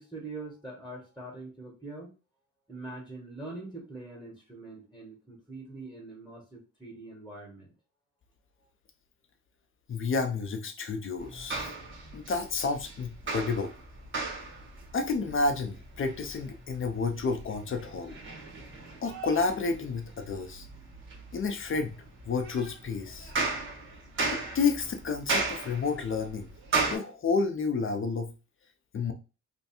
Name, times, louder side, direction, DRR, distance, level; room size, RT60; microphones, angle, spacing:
voice 1, 0.0-2.1 2.7-7.7, right 2 dB, ahead, -2 dB, 1.5 m, -43 dB
voice 2, 9.9-11.7 12.1-13.7 14.9-18.1 19.0-20.7 21.3-23.3 24.3-26.5 26.9-28.3 28.9-29.1, left 4 dB, 40° left, 6 dB, 0.7 m, -30 dB
sound 1, 11.2-27.0, right 3 dB, 40° right, 1.4 m, -36 dB
3.3 x 2.3 x 4.3 m, 0.31 s
cardioid pair, 90°, 30 cm